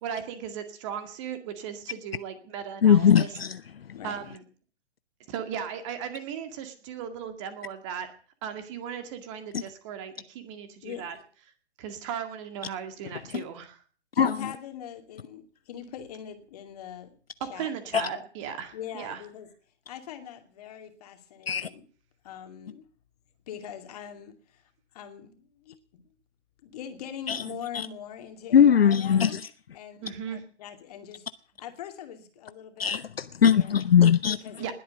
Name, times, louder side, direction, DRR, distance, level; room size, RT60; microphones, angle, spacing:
voice 1, 0.0-3.3 4.0-4.4 5.3-8.1 8.4-11.2 11.8-13.8 17.6-19.2 30.0-30.4 34.6-34.7, right 8 dB, 25° right, 2.1 m, -37 dB
voice 2, 2.8-3.6 9.5-9.6 13.3-13.4 14.2-14.3 21.5-21.7 27.3-27.4 27.7-27.9 28.5-29.4 32.8-34.4, left 8 dB, 55° left, 0.6 m, -20 dB
voice 3, 3.9-4.3 10.8-11.2 14.1-17.2 17.5-18.2 18.7-19.5 19.9-21.9 22.2-22.8 23.5-24.6 24.9-26.0 26.6-29.4 29.7-31.3 31.6-33.0 33.5-33.9 34.3-34.7, left 9 dB, 35° left, 2.6 m, -42 dB
20.0 x 8.7 x 7.9 m
figure-of-eight pair, 130°, 35 cm